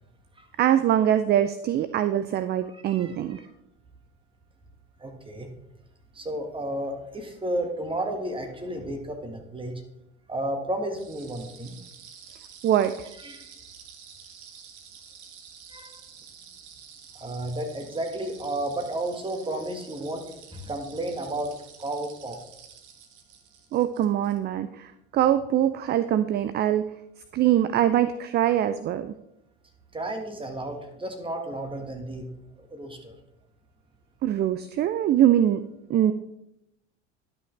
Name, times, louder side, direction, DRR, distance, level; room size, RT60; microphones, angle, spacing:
voice 1, 0.6-3.4 12.6-13.1 23.7-26.8 27.3-29.1 34.2-35.6 35.9-36.1, right 11 dB, 30° right, 12 dB, 0.4 m, -23 dB
voice 2, 2.7-3.1 5.0-5.5 6.1-9.7 10.3-11.8 13.2-13.5 15.7-16.0 17.1-20.2 20.5-21.5 21.8-22.4 29.9-32.3 32.6-33.1, right 1 dB, 15° right, 5 dB, 1.6 m, -32 dB
sound 1, 11.0-24.4, right 7 dB, 55° right, 1.3 m, -49 dB
11.5 x 5.7 x 3.3 m, 0.84 s
hypercardioid pair, 80°, 35 cm